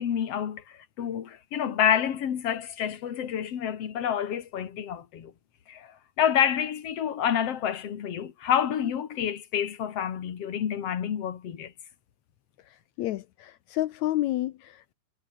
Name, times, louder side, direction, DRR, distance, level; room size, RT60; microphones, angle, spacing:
voice 1, 0.0-5.3 5.7-11.7, left 9 dB, 50° left, 2.6 m, -28 dB
voice 2, 12.7-14.9, left 15 dB, 70° left, 1.8 m, -30 dB
omnidirectional pair, 4.0 m